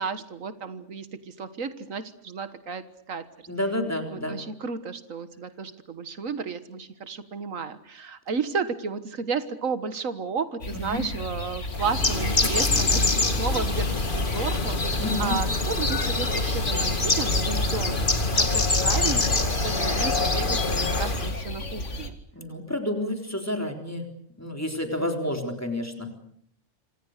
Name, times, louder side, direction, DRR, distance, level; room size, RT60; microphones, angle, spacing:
voice 1, 0.0-3.5 4.1-18.0 18.4-22.2 25.0-25.3, right 5 dB, 80° right, 11 dB, 1.8 m, -33 dB
voice 2, 3.5-4.4 10.7-11.0 15.0-15.3 22.3-24.1 24.4-26.1, left 1 dB, 10° left, 3 dB, 3.9 m, -30 dB
sound 1, 10.6-22.1, left 1 dB, 65° left, 2.4 m, -34 dB
Bird, 11.7-21.4, left 3 dB, 40° left, 2.5 m, -25 dB
28.0 x 25.5 x 6.6 m, 0.71 s
omnidirectional pair, 1.4 m